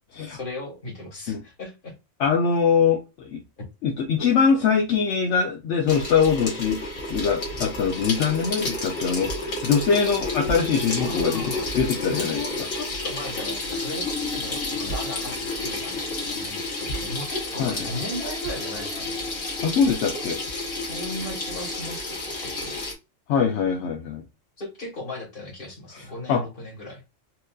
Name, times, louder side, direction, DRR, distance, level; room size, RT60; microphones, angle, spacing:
voice 1, 0.3-1.9 11.0-11.7 12.1-16.0 16.3-19.2 20.7-22.8 24.6-27.0, left 1 dB, 45° left, -1 dB, 1.7 m, -36 dB
voice 2, 2.2-3.4 3.8-6.8 7.1-9.3 9.6-11.4 11.7-12.4 17.6-17.7 19.6-20.4 23.3-24.2 26.3-26.4, left 6 dB, 70° left, 3 dB, 0.9 m, -22 dB
Water tap faucet / Sink (filling or washing), 5.9-22.9, left 2 dB, 90° left, 1.8 m, -30 dB
4.3 x 2.6 x 2.3 m, 0.25 s
omnidirectional pair, 1.3 m